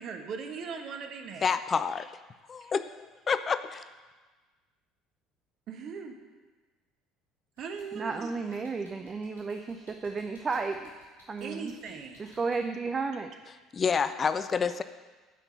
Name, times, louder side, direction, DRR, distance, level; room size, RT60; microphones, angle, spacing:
voice 1, 0.0-1.6 2.6-2.7 5.7-6.2 7.6-8.3 11.4-12.2, right 5 dB, 50° right, 5 dB, 1.3 m, -39 dB
voice 2, 1.4-2.1 2.5-3.0 3.3-3.8 13.7-14.8, left 6 dB, 30° left, 12 dB, 0.5 m, -28 dB
sound 1, 7.6-12.6, equal, 85° left, 3.9 m, -57 dB
voice 3, 7.9-10.9 11.3-11.7 12.2-13.3, right 4 dB, 30° right, 6 dB, 0.6 m, -33 dB
9.2 x 5.9 x 8.3 m, 1.3 s
figure-of-eight pair, 60°, 0 cm